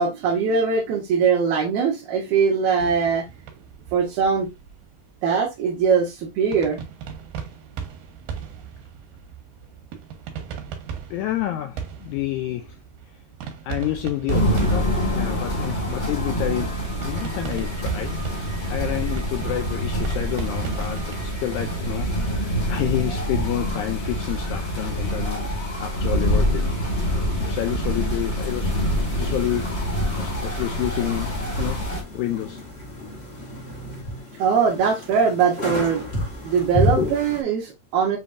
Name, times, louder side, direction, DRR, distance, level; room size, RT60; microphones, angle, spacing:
voice 1, 0.0-3.3 3.9-4.5 5.2-6.8 34.4-36.0 36.4-38.2, right 6 dB, 70° right, 2.2 m, -21 dB
sound 1, 2.8-21.2, right 7 dB, 85° right, 2.8 m, -37 dB
voice 2, 11.1-12.8 13.6-26.8 27.4-29.7 30.2-31.9 32.1-32.7, left 13 dB, 80° left, 1.7 m, -29 dB
sound 2, 14.3-32.0, equal, 25° left, 1.4 m, -26 dB
sound 3, 28.5-37.4, left 1 dB, 45° left, 0.8 m, -31 dB
6.8 x 2.8 x 2.5 m
omnidirectional pair, 3.8 m